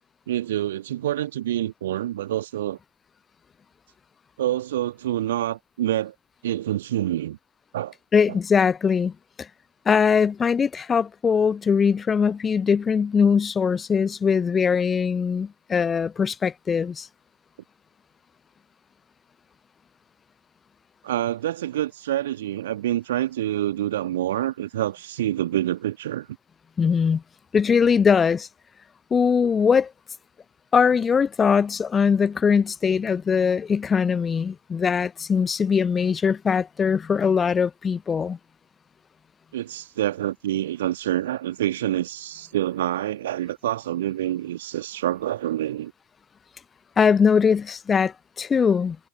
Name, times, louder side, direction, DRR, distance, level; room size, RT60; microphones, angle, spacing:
voice 1, 0.3-2.8 4.4-6.1 6.4-7.4 7.7-7.9 8.3-8.4 21.0-26.3 39.5-45.9, right 13 dB, 60° right, 1.3 m, -27 dB
voice 2, 8.1-9.1 9.4-9.5 9.9-17.1 26.8-27.2 27.5-28.5 29.1-29.9 30.7-38.4 47.0-49.0, left 6 dB, 20° left, 0.5 m, -21 dB
figure-of-eight pair, 90°, 0 cm